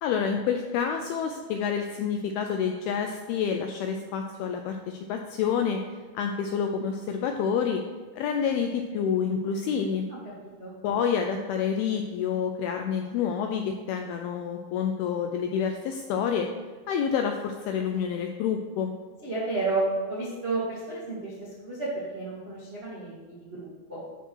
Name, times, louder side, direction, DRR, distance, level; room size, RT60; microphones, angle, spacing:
voice 1, 0.0-5.8 6.1-7.8 8.2-10.1 10.8-16.5 16.9-18.9, left 7 dB, 85° left, 4 dB, 2.2 m, -28 dB
voice 2, 10.1-10.7 19.2-19.8 20.1-24.0, right 3 dB, 85° right, -7 dB, 0.5 m, -32 dB
13.0 x 4.5 x 4.6 m, 1.4 s
omnidirectional pair, 5.0 m